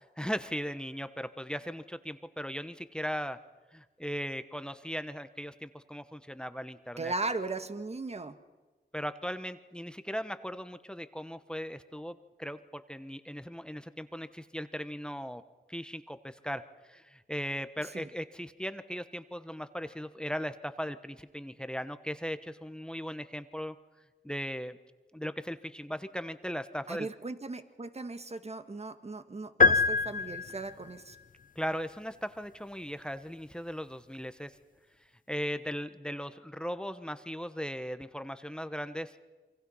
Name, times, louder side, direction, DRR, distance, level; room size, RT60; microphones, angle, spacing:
voice 1, 0.2-3.4 3.7-7.1 8.9-15.4 15.7-23.8 24.2-24.8 25.1-27.1 31.6-34.5 35.3-39.2, equal, 5° left, 11 dB, 1.1 m, -38 dB
voice 2, 7.0-8.4 17.9-18.1 26.9-31.2, right 3 dB, 35° right, 10 dB, 1.7 m, -37 dB
sound 1, 29.6-30.9, left 4 dB, 50° left, 0.9 m, -24 dB
28.5 x 24.0 x 5.7 m, 1.2 s
cardioid pair, 55°, 18 cm